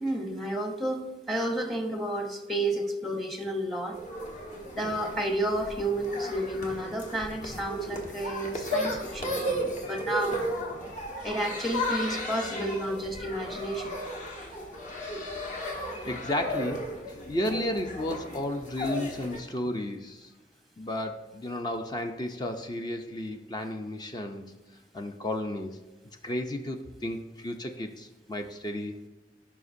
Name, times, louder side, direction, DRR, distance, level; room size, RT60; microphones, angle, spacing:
voice 1, 0.0-4.0 4.7-10.4 11.2-14.0, right 1 dB, ahead, 4 dB, 0.9 m, -31 dB
sound 1, 3.9-19.4, equal, 45° left, 1.4 m, -35 dB
voice 2, 15.8-20.3 20.8-24.4 24.9-25.8 26.2-29.0, left 1 dB, 25° left, 5 dB, 0.5 m, -33 dB
14.5 x 5.8 x 2.7 m, 1.2 s
head